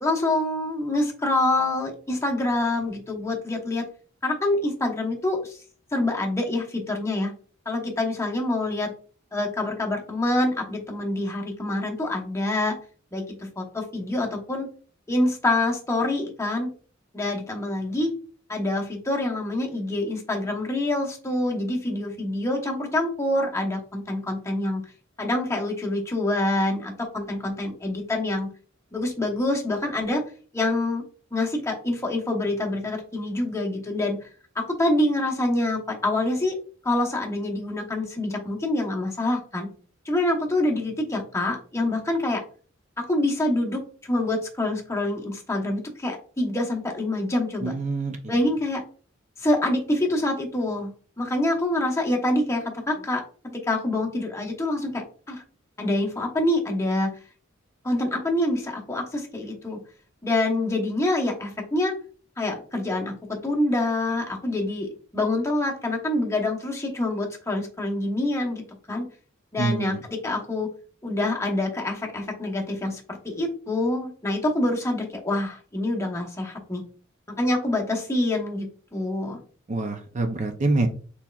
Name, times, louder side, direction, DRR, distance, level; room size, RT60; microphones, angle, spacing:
voice 1, 0.0-3.9 4.2-5.6 5.9-7.3 7.7-8.9 9.3-12.8 13.1-14.7 15.1-16.7 17.1-18.1 18.5-24.8 25.2-28.5 28.9-30.2 30.5-31.0 31.3-34.2 34.5-36.6 36.8-39.7 40.0-42.4 43.0-47.7 48.3-48.8 49.4-50.9 51.2-55.4 55.8-57.1 57.8-59.8 60.2-61.9 62.4-68.6 68.9-69.0 69.5-70.7 71.0-76.8 77.3-79.4, left 1 dB, 15° left, 0 dB, 0.9 m, -26 dB
voice 2, 47.6-48.4 69.6-70.0 79.7-80.9, right 2 dB, 35° right, 6 dB, 0.5 m, -26 dB
4.4 x 4.1 x 2.3 m, 0.40 s
head